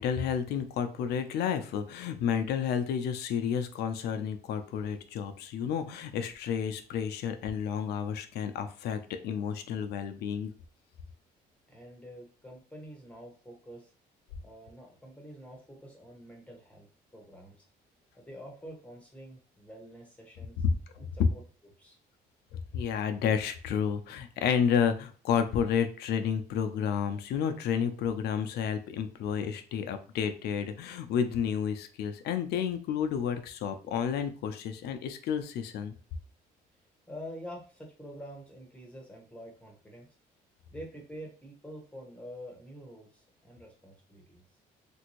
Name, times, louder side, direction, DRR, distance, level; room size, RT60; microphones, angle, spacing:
voice 1, 0.0-10.5 20.6-20.7 21.2-21.3 22.5-35.9, left 7 dB, 75° left, 8 dB, 0.5 m, -31 dB
voice 2, 11.7-13.9 14.4-16.9 17.1-17.6 18.1-20.6 20.9-21.4 21.8-22.0 37.1-40.1 40.7-44.4, equal, 10° left, 0 dB, 0.8 m, -47 dB
3.4 x 2.6 x 3.0 m, 0.40 s
cardioid pair, 110°, 17 cm